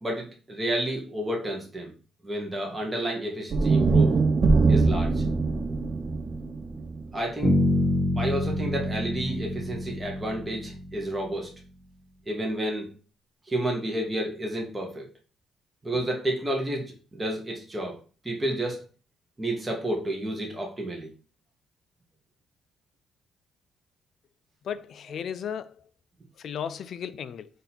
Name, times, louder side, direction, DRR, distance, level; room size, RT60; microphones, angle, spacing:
voice 1, 0.0-1.9 2.2-4.2 4.7-5.2 7.1-7.6 8.2-11.6 12.3-12.9 13.5-15.1 15.8-18.8 19.4-21.1, right 1 dB, 20° right, 1.1 m, -31 dB
sound 1, 3.5-7.7, right 4 dB, 45° right, 0.6 m, -23 dB
Bass guitar, 7.4-11.4, left 1 dB, 10° left, 1.4 m, -27 dB
voice 2, 24.6-25.7 26.4-27.5, left 8 dB, 65° left, 0.4 m, -35 dB
3.9 x 2.6 x 4.3 m
cardioid pair, 90°, 0 cm